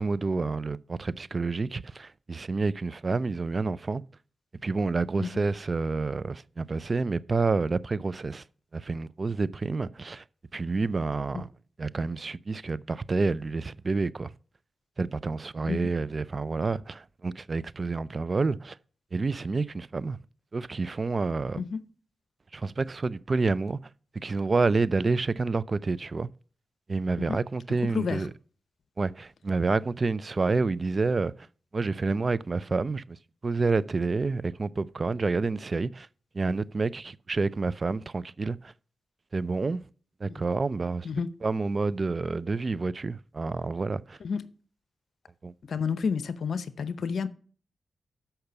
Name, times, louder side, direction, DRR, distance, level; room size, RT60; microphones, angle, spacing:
voice 1, 0.0-4.0 4.6-8.4 8.7-10.2 10.5-11.5 11.8-14.3 15.0-18.8 19.1-20.2 20.5-21.6 22.5-23.8 24.1-26.3 26.9-28.3 29.0-31.5 31.7-33.2 33.4-36.1 36.3-38.7 39.3-39.8 40.2-41.1 41.4-44.2 45.4-45.5, right 3 dB, 45° right, 0.4 m, -28 dB
voice 2, 27.9-28.3 40.3-40.4 41.0-41.3 44.2-44.4 45.7-47.3, left 5 dB, 75° left, 0.7 m, -30 dB
6.6 x 5.8 x 6.7 m
cardioid pair, 50°, 0 cm